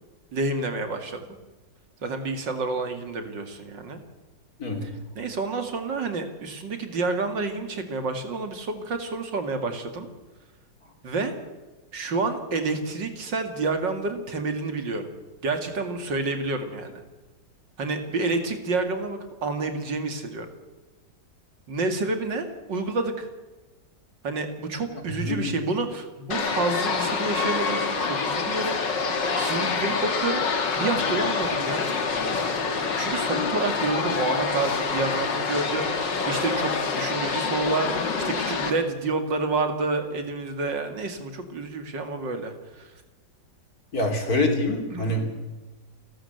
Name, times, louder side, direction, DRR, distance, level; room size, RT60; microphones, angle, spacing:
voice 1, 0.3-1.2 2.0-4.0 4.8-4.9 5.2-10.1 11.0-11.3 11.9-15.1 15.4-17.0 17.8-20.5 21.7-23.3 24.2-30.5 30.7-31.8 33.0-42.9 44.9-45.2, right 3 dB, 80° right, 7 dB, 3.0 m, -29 dB
voice 2, 4.6-4.9 25.2-25.5 43.9-45.2, left 2 dB, 55° left, 4 dB, 3.9 m, -25 dB
sound 1, 26.3-38.7, left 4 dB, 75° left, 2.6 m, -26 dB
29.0 x 13.0 x 8.0 m, 1.2 s
omnidirectional pair, 1.9 m